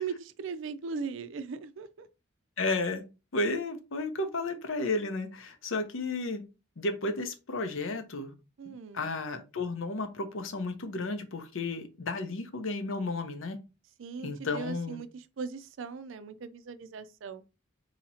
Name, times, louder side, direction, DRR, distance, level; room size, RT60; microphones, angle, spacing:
voice 1, 0.0-2.1 8.6-9.1 14.0-17.4, right 5 dB, 65° right, 0.4 m, -39 dB
voice 2, 2.6-3.0 3.3-6.4 6.8-8.3 8.7-13.6 14.2-15.0, left 2 dB, 75° left, 0.7 m, -33 dB
2.8 x 2.8 x 4.1 m
head